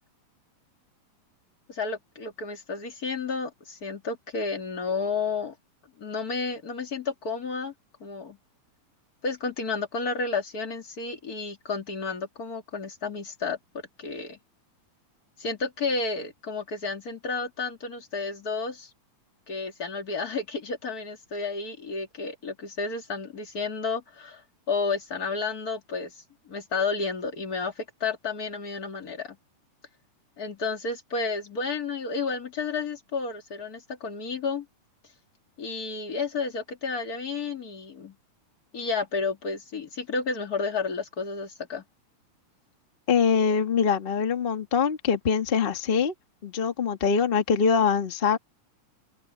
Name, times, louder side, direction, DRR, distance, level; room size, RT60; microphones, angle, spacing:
voice 1, 1.7-5.5 6.0-7.7 8.0-8.4 9.2-13.6 14.0-14.4 15.4-18.9 19.5-24.4 24.7-26.1 26.5-29.4 30.4-34.7 35.6-38.1 38.7-41.8, left 4 dB, 30° left, 2.3 m, -31 dB
voice 2, 43.1-46.1 46.4-48.4, left 6 dB, 80° left, 0.5 m, -23 dB
open air
omnidirectional pair, 4.0 m